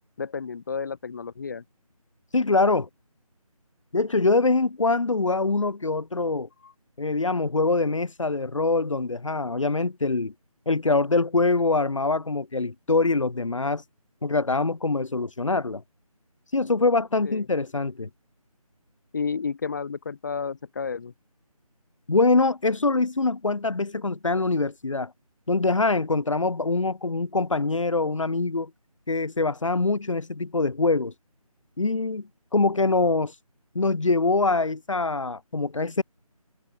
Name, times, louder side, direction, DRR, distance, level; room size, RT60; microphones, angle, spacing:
voice 1, 0.2-1.6 6.6-6.7 17.2-17.4 19.1-21.1, left 5 dB, 30° left, 6.4 m, -31 dB
voice 2, 2.3-2.9 3.9-6.5 7.0-10.3 10.7-13.8 14.2-15.8 16.5-18.1 22.1-25.1 25.5-28.7 29.1-31.1 31.8-33.3 33.7-36.0, left 3 dB, 55° left, 7.4 m, -24 dB
figure-of-eight pair, 170°, 19 cm